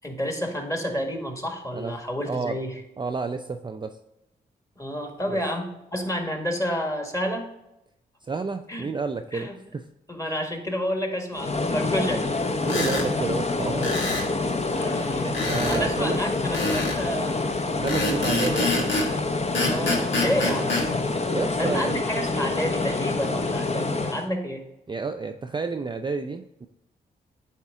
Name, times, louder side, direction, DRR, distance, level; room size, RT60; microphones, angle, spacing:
voice 1, 0.0-2.7 4.8-7.5 8.7-8.9 9.3-9.6 10.1-12.2 14.8-17.4 19.6-20.7 21.6-24.6, equal, 15° left, 3 dB, 1.6 m, -30 dB
voice 2, 2.3-2.6 3.0-4.0 5.3-5.4 8.2-9.8 12.7-14.0 15.2-16.2 17.8-18.9 21.3-22.0 24.9-26.7, right 4 dB, 25° right, 6 dB, 0.4 m, -30 dB
sound 1, 11.3-24.3, left 3 dB, 35° left, 0.8 m, -27 dB
sound 2, 12.6-13.1 13.8-14.3 15.3-15.8 16.5-17.0 17.9-19.1 19.5-20.9, left 2 dB, 70° left, 1.4 m, -26 dB
8.7 x 3.6 x 3.6 m, 0.89 s
supercardioid pair, 45°, 19 cm